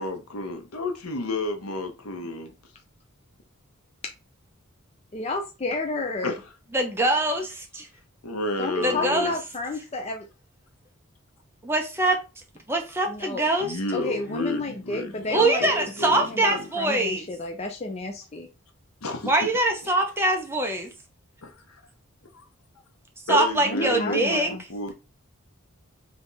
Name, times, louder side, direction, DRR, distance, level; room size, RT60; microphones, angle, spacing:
voice 1, 0.0-2.5 6.2-6.4 8.2-9.4 13.6-16.7 19.0-19.3 21.4-21.5 22.3-22.4 23.3-24.9, left 2 dB, 90° left, 1.0 m, -31 dB
voice 2, 5.1-6.3 8.6-10.3 13.1-13.4 13.9-15.7 16.1-18.5 23.7-24.6, left 2 dB, 30° left, 0.5 m, -31 dB
voice 3, 6.7-7.9 8.8-9.3 11.6-12.2 12.7-13.8 15.3-17.3 19.2-20.9 23.3-24.5, right 2 dB, 10° right, 0.9 m, -23 dB
3.5 x 3.4 x 4.0 m
head